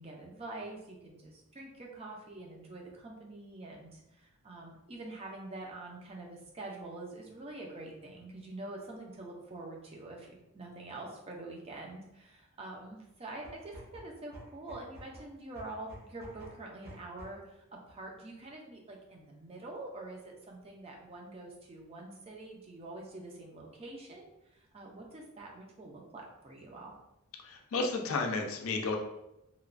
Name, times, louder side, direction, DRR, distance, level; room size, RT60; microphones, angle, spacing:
voice 1, 0.0-26.9, right 2 dB, 25° right, -1 dB, 0.4 m, -46 dB
sound 1, 13.4-17.5, equal, 45° right, 0.9 m, -51 dB
voice 2, 27.4-29.0, left 3 dB, 70° left, 3 dB, 0.4 m, -32 dB
3.0 x 2.2 x 2.4 m, 0.87 s
head